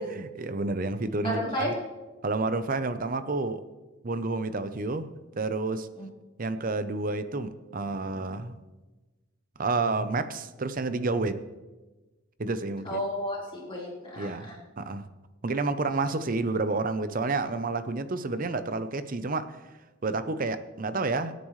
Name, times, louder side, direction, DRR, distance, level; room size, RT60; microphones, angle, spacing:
voice 1, 0.0-1.7 2.2-3.6 4.0-5.1 5.4-5.9 6.4-8.6 9.6-11.4 12.4-13.0 14.1-15.1 15.4-19.6 20.0-21.3, right 3 dB, 45° right, 11 dB, 0.7 m, -30 dB
voice 2, 1.2-1.7 6.0-6.1 12.8-14.5, equal, 25° left, -6 dB, 4.1 m, -32 dB
24.5 x 9.4 x 3.2 m, 1.2 s
head